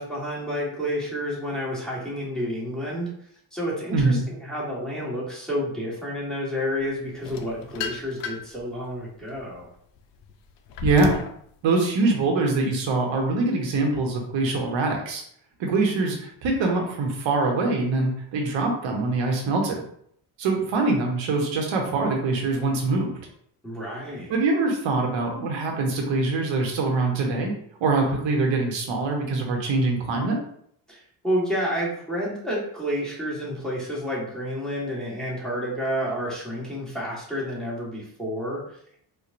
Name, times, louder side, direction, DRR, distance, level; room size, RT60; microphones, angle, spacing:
voice 1, 0.0-3.1 3.5-9.7 23.6-24.3 30.9-39.0, equal, ahead, -6 dB, 1.5 m, -30 dB
voice 2, 3.9-4.2 10.8-11.1 11.6-15.2 15.6-19.8 20.4-23.1 24.3-27.5 27.8-30.4, right 3 dB, 70° right, 1 dB, 1.2 m, -23 dB
sound 1, 7.2-8.6 9.1-11.4, left 7 dB, 65° left, 0.6 m, -33 dB
4.5 x 2.5 x 2.6 m, 0.66 s
cardioid pair, 100°, 46 cm